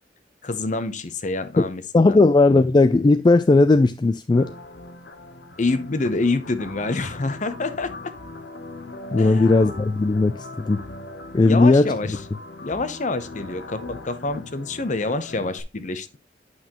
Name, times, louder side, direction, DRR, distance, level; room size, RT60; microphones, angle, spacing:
voice 1, 0.4-2.2 5.6-7.9 9.2-9.4 11.4-12.2 12.6-16.2, left 3 dB, 45° left, 0.8 m, -27 dB
voice 2, 1.9-4.5 9.1-10.8 11.3-11.9, left 3 dB, 25° left, 0.3 m, -17 dB
sound 1, 4.3-15.6, left 2 dB, 75° left, 0.9 m, -39 dB
8.8 x 5.6 x 2.9 m
head